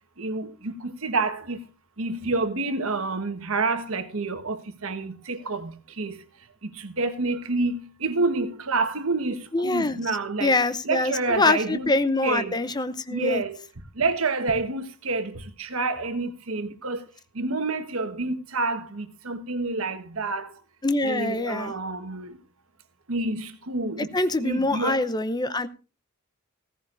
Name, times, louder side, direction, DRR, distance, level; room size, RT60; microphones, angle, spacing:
voice 1, 0.2-1.7 2.0-6.2 6.6-10.6 10.8-11.9 12.2-12.5 13.1-13.6 13.9-17.1 17.3-20.6 21.0-22.4 23.1-25.1, right 3 dB, 80° right, 1.4 m, -28 dB
voice 2, 9.5-10.0 10.4-13.4 20.8-21.7 24.0-25.7, left 2 dB, 20° left, 0.7 m, -24 dB
16.5 x 14.5 x 2.6 m
head